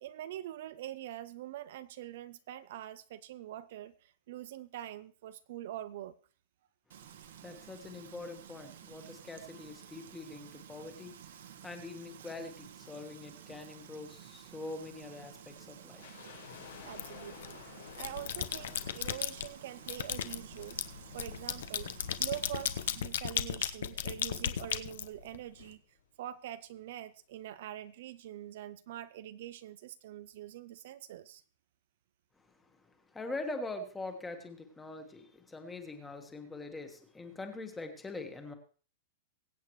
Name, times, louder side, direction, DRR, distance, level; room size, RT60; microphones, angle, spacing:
voice 1, 0.0-6.2 16.8-17.6 18.0-20.8 21.1-21.9 22.2-31.4, right 12 dB, 50° right, 0.4 m, -44 dB
Frying (food), 6.9-23.0, right 9 dB, 75° right, 1.3 m, -52 dB
voice 2, 7.1-16.8 32.4-38.5, left 2 dB, 5° left, 1.3 m, -44 dB
sound 1, 16.0-23.2 23.5-23.6 24.3-26.1 26.3-26.4 26.7-27.0 27.4-27.5, left 9 dB, 90° left, 4.1 m, -55 dB
sound 2, 17.0-17.5 17.9-19.5 19.9-25.6, left 10 dB, 65° left, 0.7 m, -36 dB
22.5 x 8.3 x 3.1 m
supercardioid pair, 175°, 0 cm